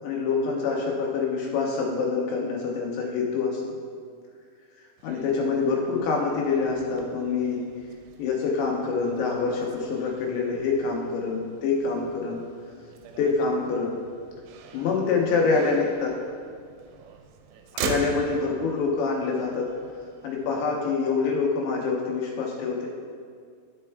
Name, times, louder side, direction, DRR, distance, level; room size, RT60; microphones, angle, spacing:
voice 1, 0.0-3.6 5.0-7.6 8.2-12.4 13.2-14.0 14.7-16.1 17.7-19.7 20.2-22.9, left 4 dB, 80° left, -1 dB, 3.0 m, -26 dB
Motor vehicle (road), 5.0-20.8, right 6 dB, 85° right, 2.8 m, -42 dB
11.5 x 5.4 x 3.3 m, 2.1 s
omnidirectional pair, 5.2 m